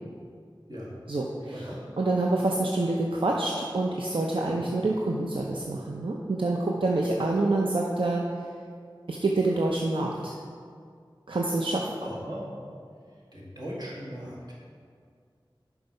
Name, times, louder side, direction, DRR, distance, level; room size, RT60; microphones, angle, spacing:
voice 1, 1.1-8.2 9.1-10.3 11.3-11.8, right 2 dB, 75° right, -2 dB, 0.6 m, -27 dB
voice 2, 12.0-12.6 13.3-14.5, equal, 50° right, -6 dB, 2.1 m, -38 dB
6.9 x 4.7 x 5.4 m, 2.1 s
wide cardioid pair, 55°, 9 cm